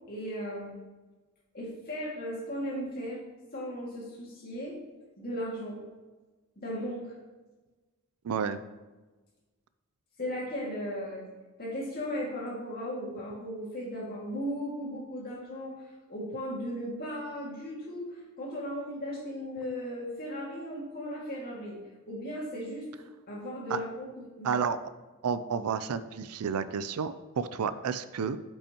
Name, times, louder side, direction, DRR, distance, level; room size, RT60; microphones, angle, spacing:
voice 1, 0.1-0.8 1.5-3.2 3.5-4.8 5.2-5.8 6.6-7.1 10.2-11.3 11.6-15.8 16.1-21.8 22.1-22.9 23.3-24.1 24.4-24.6, equal, 45° left, -4 dB, 2.1 m, -36 dB
voice 2, 8.2-8.6 23.7-23.8 24.4-24.8 25.2-28.4, right 6 dB, 85° right, 13 dB, 0.4 m, -31 dB
8.7 x 5.5 x 3.0 m, 1.2 s
head